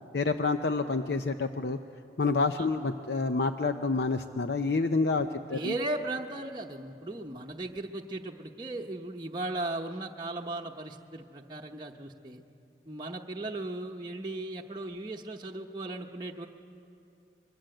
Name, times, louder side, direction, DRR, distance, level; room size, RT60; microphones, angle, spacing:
voice 1, 0.1-1.8 2.2-5.7, left 3 dB, 70° left, 8 dB, 0.6 m, -28 dB
voice 2, 5.2-12.4 12.9-16.5, right 2 dB, 25° right, -1 dB, 0.9 m, -37 dB
24.5 x 22.0 x 7.8 m, 2.7 s
head